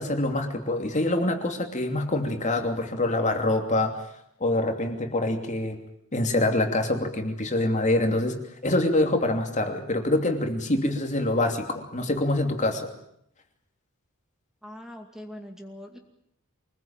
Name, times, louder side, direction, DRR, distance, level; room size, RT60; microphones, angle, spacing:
voice 1, 0.0-4.0 4.4-5.8 6.1-12.9, left 2 dB, 35° left, 4 dB, 2.9 m, -25 dB
voice 2, 14.6-16.0, equal, ahead, 4 dB, 2.4 m, -42 dB
25.0 x 20.5 x 9.0 m, 0.74 s
head